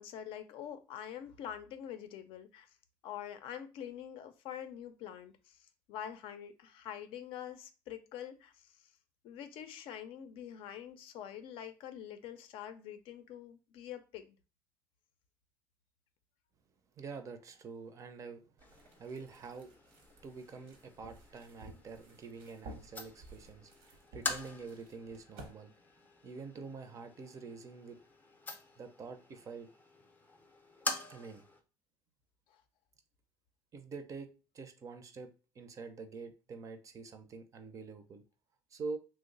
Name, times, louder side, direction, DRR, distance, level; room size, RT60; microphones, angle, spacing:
voice 1, 0.0-2.7 3.0-8.9 9.2-14.4 32.5-32.6, left 9 dB, 70° left, 0.5 m, -45 dB
voice 2, 17.0-19.7 20.2-25.7 26.2-28.0 28.8-29.7 31.1-31.5 33.7-35.3 35.6-38.2 38.7-39.0, right 4 dB, 35° right, 0.5 m, -46 dB
sound 1, 18.6-31.6, left 3 dB, 20° left, 0.5 m, -46 dB
sound 2, 18.6-25.5, right 2 dB, 85° right, 0.8 m, -54 dB
3.0 x 2.0 x 3.7 m
cardioid pair, 120°, 9 cm